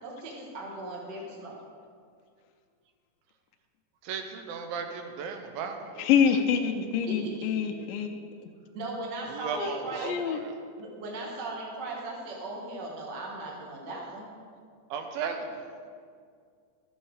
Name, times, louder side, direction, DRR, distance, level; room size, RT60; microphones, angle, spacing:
voice 1, 0.0-1.6 7.1-7.6 8.7-10.1 10.8-14.3, right 2 dB, 45° right, -2 dB, 1.6 m, -38 dB
voice 2, 4.0-6.1 9.3-10.6 14.9-15.6, right 6 dB, 90° right, 6 dB, 2.7 m, -36 dB
voice 3, 6.0-8.1 9.5-9.7 10.0-10.4, left 7 dB, 90° left, 3 dB, 2.4 m, -25 dB
12.5 x 8.0 x 4.8 m, 2.1 s
omnidirectional pair, 4.0 m